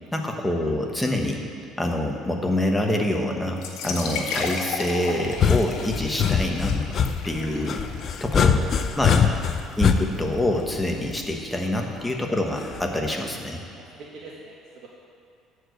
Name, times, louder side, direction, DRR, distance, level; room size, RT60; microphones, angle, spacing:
voice 1, 0.1-1.4 1.8-6.8 7.2-7.8 8.2-8.6 8.9-9.2 9.8-13.6, left 1 dB, 5° left, 1 dB, 1.2 m, -26 dB
sound 1, 3.5-11.1, left 5 dB, 85° left, 1.4 m, -35 dB
sound 2, 5.2-11.3 12.7-13.1, left 7 dB, 40° left, 0.5 m, -23 dB
voice 2, 7.2-8.1 8.7-8.8 9.2-9.4 9.8-9.9 11.8-12.1 13.0-13.1 13.8-14.9, right 3 dB, 60° right, -4 dB, 1.7 m, -45 dB
13.5 x 4.9 x 7.9 m, 2.6 s
cardioid pair, 140°, 0 cm